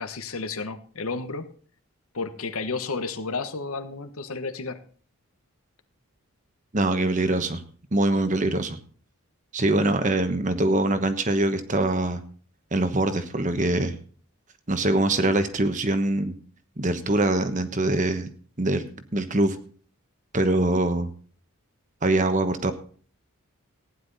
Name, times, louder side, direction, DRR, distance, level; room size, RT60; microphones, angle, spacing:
voice 1, 0.0-1.5 2.1-4.8, left 4 dB, 75° left, 10 dB, 1.2 m, -32 dB
voice 2, 6.7-7.6 7.9-8.8 9.5-12.2 12.7-13.9 14.7-16.3 16.8-18.3 18.6-18.8 19.1-19.6 20.3-21.1 22.0-22.7, right 2 dB, 35° right, 9 dB, 1.2 m, -23 dB
15.5 x 10.0 x 4.1 m, 0.43 s
head